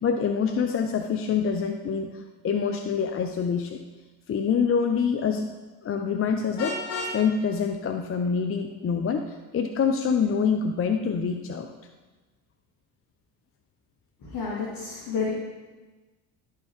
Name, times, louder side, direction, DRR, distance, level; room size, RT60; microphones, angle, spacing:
voice 1, 0.0-3.8 4.3-5.5 5.8-11.7, left 6 dB, 30° left, 6 dB, 0.6 m, -26 dB
Vehicle horn car horn honking, 6.6-7.2, left 2 dB, 80° left, 1.8 m, -31 dB
voice 2, 14.2-15.3, left 5 dB, 50° left, -5 dB, 1.9 m, -30 dB
12.0 x 4.6 x 3.5 m, 1.2 s
hypercardioid pair, 65°, 43 cm